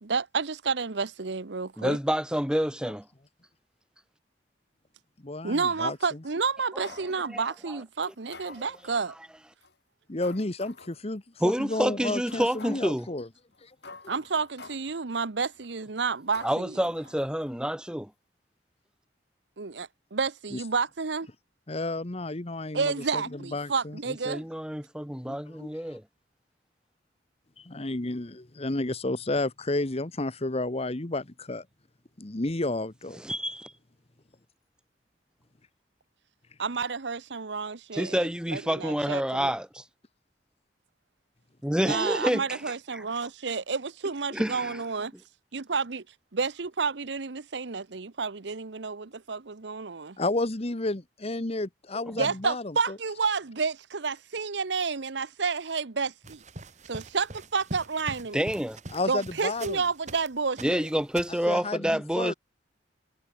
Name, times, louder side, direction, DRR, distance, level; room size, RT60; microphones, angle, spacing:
voice 1, 0.0-2.0 5.4-9.1 14.1-16.8 19.6-21.3 22.7-24.4 36.6-39.5 41.8-45.1 45.5-46.0 46.3-50.2 52.2-56.4 56.9-58.4 59.1-60.8, right 5 dB, 70° right, 0.9 m, -30 dB
voice 2, 1.8-3.1 6.7-6.8 7.3-7.8 8.6-8.7 11.4-13.1 16.4-18.1 24.3-26.0 33.2-33.7 37.9-39.8 41.6-42.6 42.9-43.0 44.3-44.8 58.3-58.8 60.6-62.3, equal, 5° right, 1.3 m, -28 dB
voice 3, 5.2-6.0 10.1-13.3 13.6-13.7 20.5-20.6 21.7-24.0 25.2-26.0 27.6-31.6 32.2-33.2 50.2-53.0 58.9-59.8 61.5-62.3, left 2 dB, 35° left, 1.2 m, -31 dB
sound 1, 6.8-7.1 8.0-9.0 9.6-9.7 10.2-11.0 11.5-11.6 12.3-13.0 13.5-13.6 13.8-15.0 15.5-15.8 16.3-17.6 17.8-17.9, left 3 dB, 65° left, 7.5 m, -48 dB
sound 2, 56.2-60.3 60.6-61.5, right 2 dB, 40° right, 1.8 m, -43 dB
head